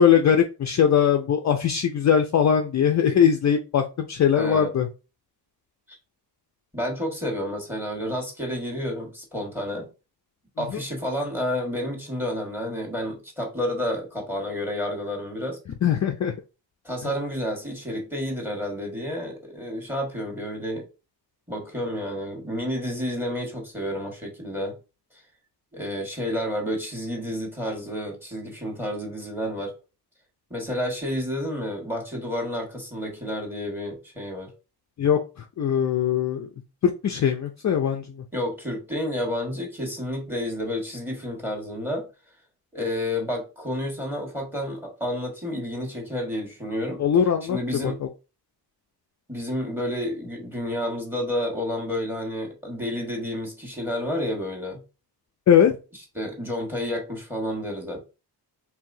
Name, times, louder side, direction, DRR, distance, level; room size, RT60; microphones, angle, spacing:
voice 1, 0.0-4.9 10.6-10.8 15.8-16.3 35.0-35.2 35.6-36.5 36.8-38.2 47.0-48.1 55.5-55.8, left 8 dB, 45° left, 0.4 m, -21 dB
voice 2, 4.3-4.7 5.9-6.0 6.7-9.9 10.6-15.6 16.8-20.8 21.5-24.8 25.7-29.7 30.5-34.5 38.3-42.1 42.7-47.0 47.5-48.0 49.3-54.8 56.1-58.1, left 1 dB, 5° right, 1.5 m, -30 dB
4.7 x 3.4 x 2.6 m
wide cardioid pair, 150°, 41 cm